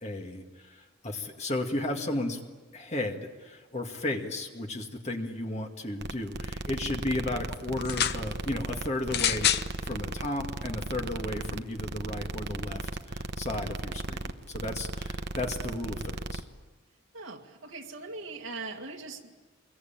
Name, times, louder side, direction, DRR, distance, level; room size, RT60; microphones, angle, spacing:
voice 1, 0.0-2.4 2.7-16.4, left 1 dB, 35° left, 3 dB, 2.1 m, -34 dB
sound 1, 6.0-16.4, right 2 dB, 55° right, 1.1 m, -36 dB
sound 2, 7.8-8.2 9.1-9.7 10.6-10.7, left 10 dB, 50° left, 0.8 m, -26 dB
voice 2, 17.1-19.4, right 3 dB, 70° right, 0 dB, 2.1 m, -40 dB
27.0 x 22.0 x 8.9 m, 1.4 s
head